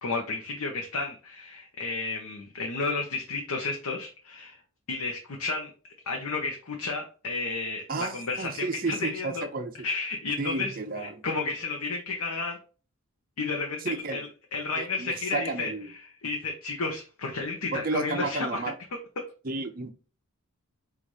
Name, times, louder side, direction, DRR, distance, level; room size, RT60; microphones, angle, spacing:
voice 1, 0.0-4.6 4.9-5.7 6.1-9.4 9.8-12.6 13.4-18.6, left 3 dB, 80° left, 2 dB, 0.7 m, -32 dB
voice 2, 7.9-9.7 10.4-11.2 13.8-14.2 14.8-15.9 17.7-18.7 19.4-19.9, right 3 dB, 40° right, 5 dB, 0.6 m, -32 dB
4.7 x 2.5 x 4.0 m, 0.36 s
head